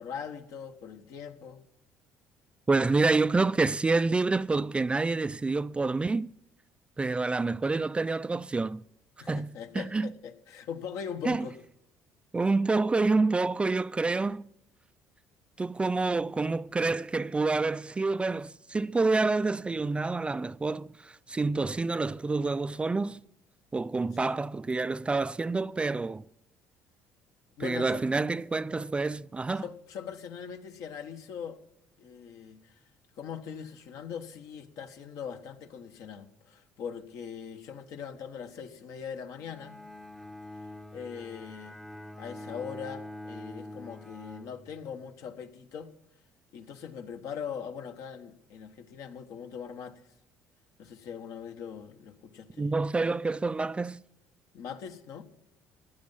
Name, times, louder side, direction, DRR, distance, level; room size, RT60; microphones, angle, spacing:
voice 1, 0.0-1.6 9.2-11.5 24.1-24.4 27.6-28.0 29.5-31.6 32.0-32.7 33.2-39.8 40.9-41.8 42.2-45.9 46.5-50.0 50.8-52.7 54.5-55.2, left 7 dB, 70° left, 1.4 m, -41 dB
voice 2, 2.7-6.3 7.0-8.8 9.3-10.1 11.3-11.5 12.3-14.4 15.6-23.2 23.7-26.2 27.6-29.6 52.6-54.0, right 3 dB, 20° right, 0.4 m, -28 dB
Bowed string instrument, 39.4-45.2, left 1 dB, 5° left, 0.7 m, -45 dB
15.5 x 9.6 x 5.6 m
supercardioid pair, 80°, 6 cm